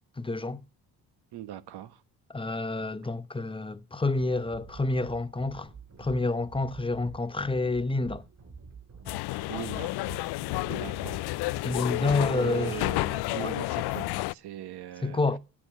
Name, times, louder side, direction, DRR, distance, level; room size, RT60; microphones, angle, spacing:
voice 1, 0.2-0.6 2.3-5.7 6.0-8.2 11.6-12.8 13.3-13.5 15.0-15.4, left 3 dB, 15° left, 0.8 m, -28 dB
voice 2, 1.3-2.0 9.5-9.9 10.7-11.3 12.3-15.2, right 13 dB, 70° right, 1.2 m, -40 dB
sound 1, 4.2-12.2, right 5 dB, 45° right, 4.4 m, -48 dB
sound 2, 9.1-14.3, left 19 dB, 70° left, 0.5 m, -31 dB
9.3 x 7.1 x 8.7 m
supercardioid pair, 70°, 40 cm